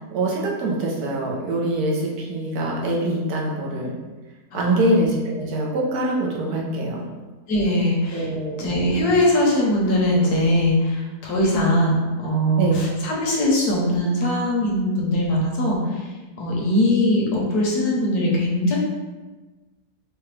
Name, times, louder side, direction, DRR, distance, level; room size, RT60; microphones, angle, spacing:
voice 1, 0.0-3.9 4.5-7.0 8.1-8.7 12.5-12.8, right 1 dB, 75° right, -3 dB, 1.3 m, -24 dB
voice 2, 4.5-4.9 7.5-8.3 8.5-16.0 16.4-18.8, left 1 dB, 75° left, -2 dB, 1.4 m, -21 dB
4.8 x 2.3 x 3.2 m, 1.2 s
omnidirectional pair, 1.7 m